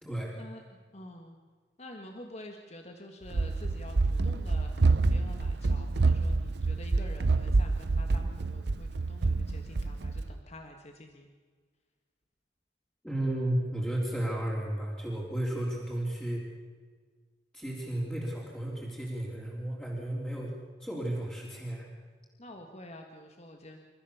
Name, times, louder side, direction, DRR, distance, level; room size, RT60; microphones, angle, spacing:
voice 1, 0.0-0.3 13.0-16.4 17.5-20.5 20.8-21.9, right 1 dB, 5° left, -5 dB, 3.7 m, -33 dB
voice 2, 0.9-1.4 1.8-11.3 22.4-23.8, left 1 dB, 40° left, 4 dB, 1.6 m, -48 dB
Run, 3.3-10.3, right 3 dB, 70° right, 0.6 m, -27 dB
28.5 x 14.0 x 7.1 m, 1.6 s
head